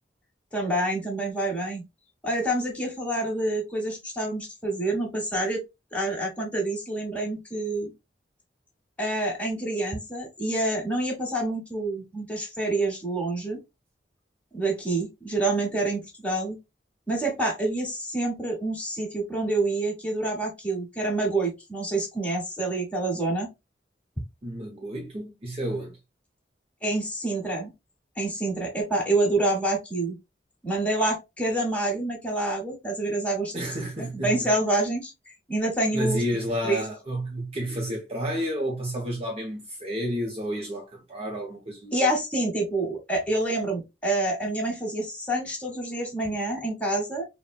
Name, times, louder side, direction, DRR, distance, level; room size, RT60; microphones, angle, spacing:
voice 1, 0.5-1.8 2.2-5.6 5.9-7.9 9.0-13.6 14.5-16.6 17.1-23.5 26.8-27.7 28.2-30.1 30.6-33.5 34.0-35.1 35.5-36.2 36.6-36.8 41.9-47.3, right 2 dB, 10° left, 1.3 m, -27 dB
voice 2, 24.4-26.0 33.5-34.5 35.9-42.1, equal, 35° right, 0.7 m, -31 dB
3.9 x 2.1 x 2.3 m
head